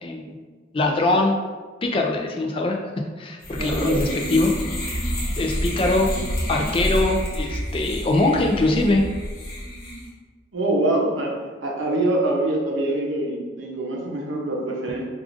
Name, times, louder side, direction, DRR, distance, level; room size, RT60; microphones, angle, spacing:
voice 1, 0.0-0.4 0.7-1.4 1.8-2.8 3.2-4.5 4.8-5.0 5.4-6.1 6.5-9.1, left 2 dB, 30° left, 1 dB, 0.3 m, -22 dB
sound 1, 3.4-10.1, equal, 55° left, 0.9 m, -28 dB
voice 2, 3.5-4.3 10.5-11.3 11.6-15.0, right 2 dB, 90° right, -1 dB, 0.7 m, -24 dB
4.7 x 2.4 x 2.5 m, 1.4 s
head